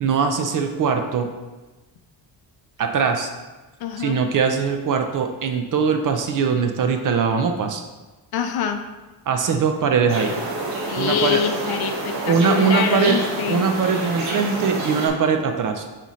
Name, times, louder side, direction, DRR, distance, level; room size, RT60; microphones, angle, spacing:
voice 1, 0.0-1.3 2.8-3.3 4.0-7.8 9.3-10.3 11.0-11.4 12.3-13.2 13.5-15.9, right 6 dB, 45° right, 5 dB, 0.5 m, -21 dB
voice 2, 3.8-4.2 8.3-8.8 10.9-13.6, left 8 dB, 55° left, 7 dB, 0.6 m, -25 dB
sound 1, 10.1-15.1, right 2 dB, 85° right, 1.5 m, -28 dB
7.7 x 4.2 x 3.1 m, 1.2 s
cardioid pair, 175°, 44 cm